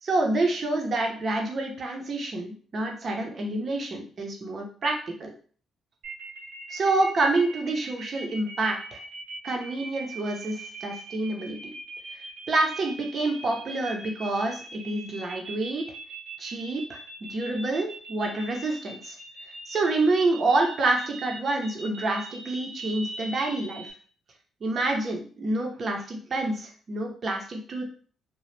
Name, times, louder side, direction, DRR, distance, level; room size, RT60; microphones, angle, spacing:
voice 1, 0.0-5.3 6.7-9.0 9.4-11.6 12.5-15.8 16.4-19.2 19.6-23.9 24.6-27.8, right 2 dB, 45° right, 1 dB, 0.8 m, -27 dB
sound 1, 6.0-23.9, right 3 dB, 85° right, 0.8 m, -41 dB
2.9 x 2.3 x 3.3 m, 0.43 s
cardioid pair, 90°, 0 cm